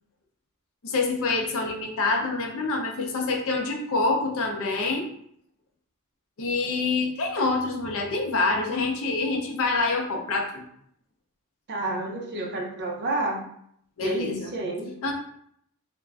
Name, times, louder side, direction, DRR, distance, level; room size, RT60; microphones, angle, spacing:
voice 1, 0.8-5.1 6.4-10.6 14.0-14.5 15.0-15.1, left 3 dB, 65° left, 2 dB, 0.5 m, -26 dB
voice 2, 11.7-13.4 14.0-15.0, right 2 dB, 50° right, 0 dB, 0.6 m, -29 dB
2.4 x 2.1 x 3.3 m, 0.69 s
head